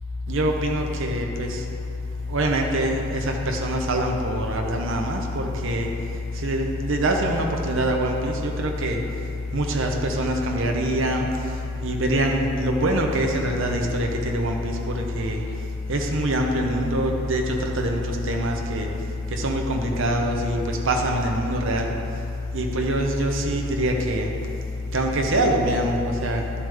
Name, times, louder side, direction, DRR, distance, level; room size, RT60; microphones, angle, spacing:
voice 1, 0.3-1.6 2.3-5.9 6.4-9.0 9.5-11.3 11.8-15.4 15.9-18.9 19.3-21.9 22.5-24.3 24.9-26.4, equal, 60° right, 1 dB, 0.9 m, -24 dB
11.5 x 6.9 x 3.5 m, 2.6 s
head